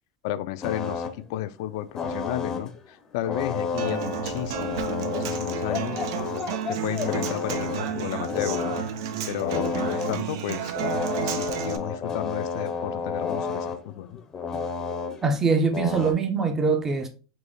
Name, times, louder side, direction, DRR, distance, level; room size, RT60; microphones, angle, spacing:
voice 1, 0.2-6.0 6.7-8.8 9.3-10.8 11.2-14.2, left 13 dB, 70° left, 0.3 m, -33 dB
sound 1, 0.6-1.2 2.0-2.8 3.2-8.9 9.3-10.3 10.8-16.1, left 5 dB, 20° left, 0.6 m, -31 dB
Human voice / Acoustic guitar, 3.8-11.8, right 9 dB, 75° right, 0.5 m, -32 dB
voice 2, 15.2-17.1, right 4 dB, 20° right, 0.6 m, -23 dB
3.9 x 3.0 x 3.4 m
supercardioid pair, 130°, 2 cm